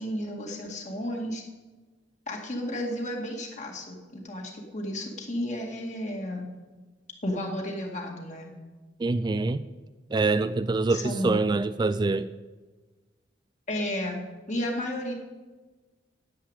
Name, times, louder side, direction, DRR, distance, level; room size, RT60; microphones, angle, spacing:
voice 1, 0.0-1.4 2.3-6.5 7.2-8.5 10.9-11.4 13.7-14.2 14.5-15.1, left 1 dB, 40° left, 2.2 m, -32 dB
voice 2, 9.0-9.6 10.1-12.3, right 3 dB, 25° right, 0.3 m, -25 dB
10.0 x 7.8 x 8.9 m
head